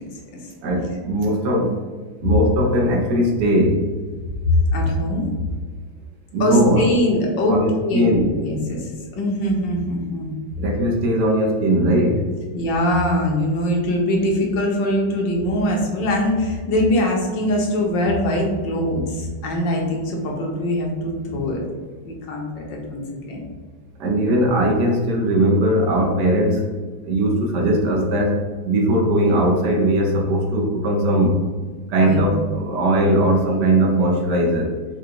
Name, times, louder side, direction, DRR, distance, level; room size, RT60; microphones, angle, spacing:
voice 1, 0.6-1.7 2.2-3.8 6.3-6.8 7.5-7.7 7.9-8.4 10.6-12.2 24.0-26.6 27.1-31.5 31.9-34.7, right 1 dB, 70° right, 0 dB, 1.3 m, -19 dB
voice 2, 4.4-5.3 6.4-8.9 9.2-10.3 12.5-21.6 22.0-23.0 23.3-23.4 27.5-27.6 32.0-32.3, left 1 dB, 75° left, 0 dB, 1.6 m, -22 dB
5.0 x 2.3 x 4.6 m, 1.5 s
omnidirectional pair, 2.0 m